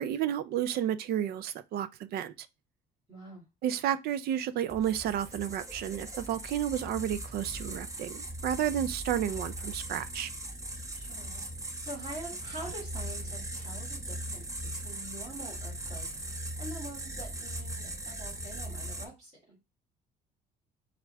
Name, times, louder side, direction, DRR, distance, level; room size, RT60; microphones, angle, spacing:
voice 1, 0.0-2.3 3.6-10.3, right 10 dB, 65° right, 0.5 m, -31 dB
voice 2, 3.1-3.4 10.9-14.5 14.7-19.5, right 1 dB, 40° right, 2.4 m, -45 dB
sound 1, 4.7-19.1, right 1 dB, 20° right, 0.9 m, -39 dB
6.0 x 2.5 x 3.3 m
cardioid pair, 110°, 17 cm